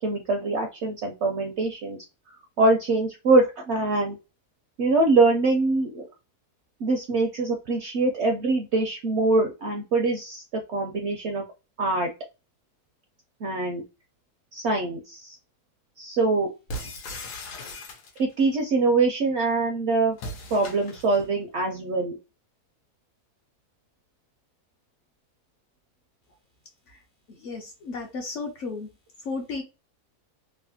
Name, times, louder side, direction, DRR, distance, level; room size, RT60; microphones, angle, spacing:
voice 1, 0.0-2.0 2.3-4.2 4.8-6.1 6.8-11.4 11.8-12.1 13.4-13.8 14.5-15.4 16.0-16.5 18.2-20.2 20.5-22.2, right 3 dB, 70° right, 2 dB, 0.6 m, -24 dB
sound 1, 16.7-18.4 20.1-21.3, left 1 dB, 85° left, 1.3 m, -38 dB
voice 2, 27.3-28.9 29.2-29.6, left 4 dB, 65° left, 2 dB, 0.8 m, -34 dB
3.2 x 2.1 x 2.6 m, 0.28 s
omnidirectional pair, 1.7 m